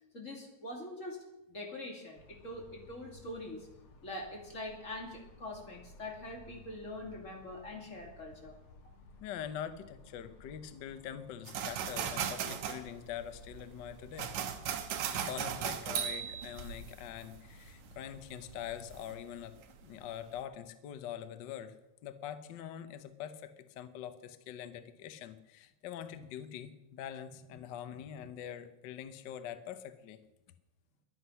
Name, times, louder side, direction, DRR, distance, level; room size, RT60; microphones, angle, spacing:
voice 1, 0.1-1.2 1.5-3.7 4.0-8.5 27.9-28.0, left 1 dB, 25° left, 0 dB, 2.8 m, -44 dB
sound 1, 2.2-19.0, left 2 dB, 50° left, 2.1 m, -56 dB
voice 2, 9.2-14.3 15.1-19.6 19.8-21.7 22.0-30.2, left 10 dB, 80° left, 10 dB, 1.0 m, -44 dB
sound 2, 11.5-19.7 20.1-20.4, right 8 dB, 80° right, 2.5 m, -38 dB
22.5 x 8.0 x 5.7 m, 0.93 s
omnidirectional pair, 3.4 m